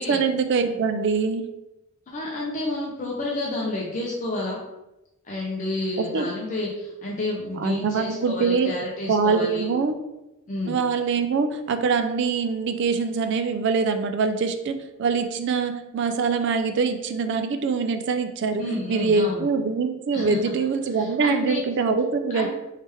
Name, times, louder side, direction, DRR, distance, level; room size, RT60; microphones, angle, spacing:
voice 1, 0.0-1.5 6.1-6.3 7.6-8.7 9.1-9.9 10.7-18.6 18.9-22.5, right 5 dB, 55° right, 7 dB, 0.3 m, -24 dB
voice 2, 2.1-4.6 5.2-9.7 10.5-10.8 18.6-19.5 20.1-20.5 20.9-21.6 22.3-22.5, left 2 dB, 35° left, -4 dB, 0.6 m, -30 dB
3.2 x 3.0 x 3.3 m, 0.96 s
head